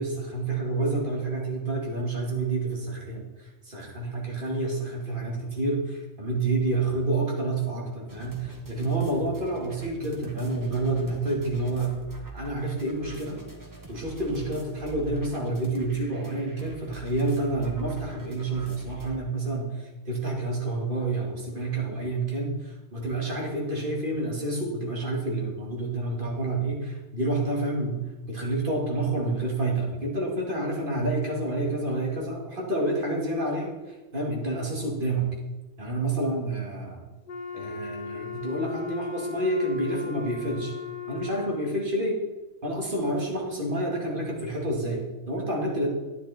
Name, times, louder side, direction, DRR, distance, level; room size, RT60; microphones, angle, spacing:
voice 1, 0.0-12.0 12.3-13.4 13.9-28.0 28.3-33.7 34.1-35.3 35.8-37.1 37.5-40.7 41.1-42.2 42.6-45.9, right 2 dB, 35° right, -2 dB, 2.4 m, -29 dB
sound 1, 8.1-19.2, right 3 dB, 15° right, 1.3 m, -45 dB
Wind instrument woodwind instrument, 37.3-41.9, left 7 dB, 55° left, 0.6 m, -37 dB
10.5 x 9.6 x 4.3 m, 1.2 s
omnidirectional pair, 1.5 m